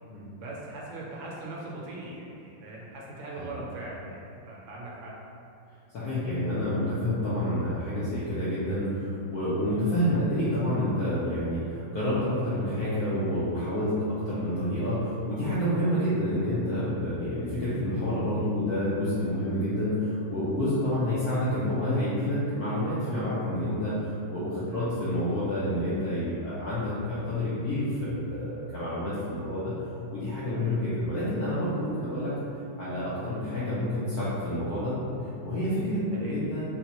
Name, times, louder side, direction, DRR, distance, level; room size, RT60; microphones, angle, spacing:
voice 1, 0.4-4.2 4.5-5.1 24.7-25.0 30.5-30.9 36.2-36.4, right 2 dB, 75° right, -4 dB, 1.2 m, -40 dB
voice 2, 5.9-29.8 30.1-32.4 32.8-34.9 35.4-36.6, left 1 dB, 75° left, -11 dB, 0.9 m, -28 dB
4.0 x 2.1 x 2.8 m, 2.7 s
omnidirectional pair, 2.3 m